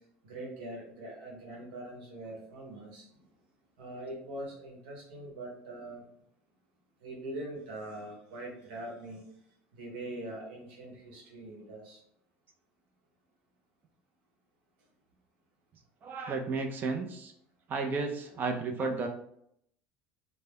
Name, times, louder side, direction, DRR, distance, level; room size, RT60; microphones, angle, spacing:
voice 1, 0.2-3.1 3.8-6.0 7.0-9.2 9.7-12.0 18.3-18.4, right 1 dB, 90° right, -1 dB, 0.9 m, -42 dB
voice 2, 16.0-17.3 17.7-19.1, right 4 dB, 40° right, 4 dB, 0.4 m, -33 dB
2.2 x 2.0 x 3.3 m, 0.72 s
supercardioid pair, 105°, 5 cm